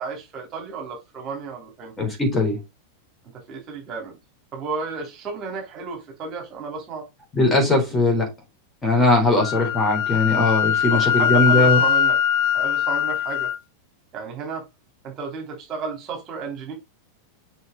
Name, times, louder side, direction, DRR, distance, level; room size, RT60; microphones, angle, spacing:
voice 1, 0.0-1.9 3.5-4.1 4.5-7.0 9.6-9.7 10.9-12.2 12.5-13.5 14.1-14.6 15.0-16.7, right 5 dB, 30° right, 3.3 m, -32 dB
voice 2, 2.0-2.6 7.4-8.3 8.8-11.8, left 2 dB, 10° left, 4.2 m, -19 dB
Wind instrument woodwind instrument, 9.4-13.6, left 8 dB, 50° left, 0.6 m, -21 dB
6.6 x 6.1 x 3.9 m
figure-of-eight pair, 90°, 0 cm